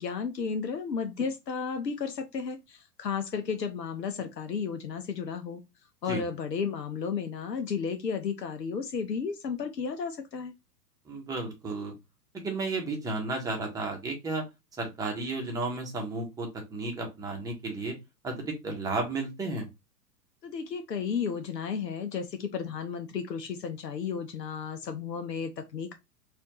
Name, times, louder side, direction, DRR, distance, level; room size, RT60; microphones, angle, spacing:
voice 1, 0.0-5.6 6.0-10.5 20.4-25.9, left 6 dB, 75° left, 0.7 m, -33 dB
voice 2, 11.1-11.9 12.3-14.4 14.8-17.9 18.2-19.7, right 3 dB, 5° right, 0.9 m, -33 dB
4.2 x 2.6 x 2.9 m
figure-of-eight pair, 105°, 49 cm